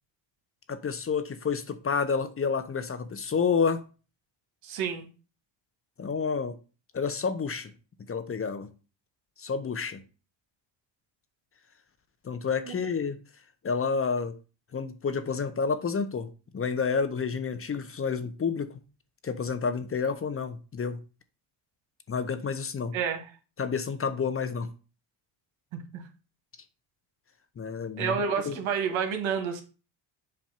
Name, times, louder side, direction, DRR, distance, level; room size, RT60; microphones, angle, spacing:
voice 1, 0.7-3.8 6.0-6.6 6.9-7.7 8.1-8.7 9.4-10.0 12.2-13.2 13.6-14.3 14.7-16.3 16.5-18.8 19.2-21.0 22.1-22.9 23.6-24.7 27.6-28.1 28.4-28.6, left 5 dB, 30° left, 0.7 m, -29 dB
voice 2, 4.6-5.1 22.9-23.3 25.7-26.0 28.0-29.6, right 6 dB, 85° right, 1.5 m, -29 dB
7.4 x 2.5 x 5.6 m
cardioid pair, 105°, 47 cm